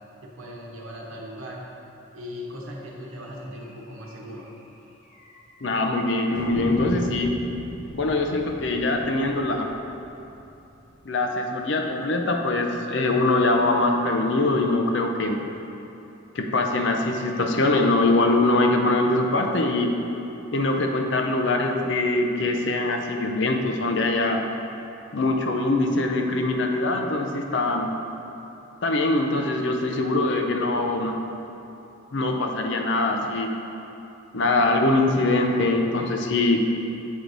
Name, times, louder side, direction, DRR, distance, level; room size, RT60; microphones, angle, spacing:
voice 1, 0.2-1.6 2.1-4.4, equal, 80° right, -2 dB, 1.1 m, -38 dB
sound 1, 3.5-3.7 4.0-4.1 4.4-4.5 5.1-5.6 6.3-11.1, equal, 40° left, 1.5 m, -37 dB
voice 2, 5.6-7.3 7.9-9.7 11.0-15.4 16.3-19.9 20.5-24.4 25.1-27.9 28.8-31.2 32.1-33.5 34.3-36.6, left 2 dB, 60° left, 3 dB, 0.6 m, -23 dB
8.0 x 4.6 x 4.0 m, 2.9 s
head